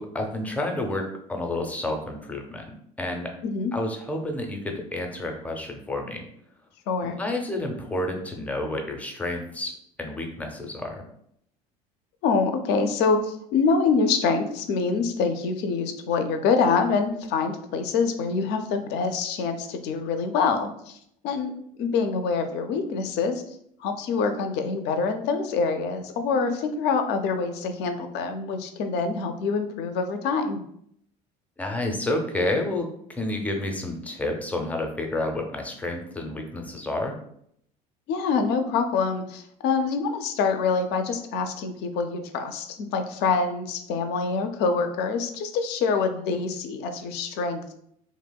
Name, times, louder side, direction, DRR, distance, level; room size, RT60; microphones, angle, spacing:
voice 1, 0.0-3.3 3.7-6.2 7.0-9.7 10.0-11.0 31.6-37.2, left 1 dB, 5° left, 2 dB, 0.5 m, -30 dB
voice 2, 12.2-21.0 21.2-23.4 23.8-30.6 38.1-47.7, left 5 dB, 60° left, 7 dB, 0.4 m, -25 dB
2.7 x 2.0 x 2.2 m, 0.69 s
hypercardioid pair, 75°, 20 cm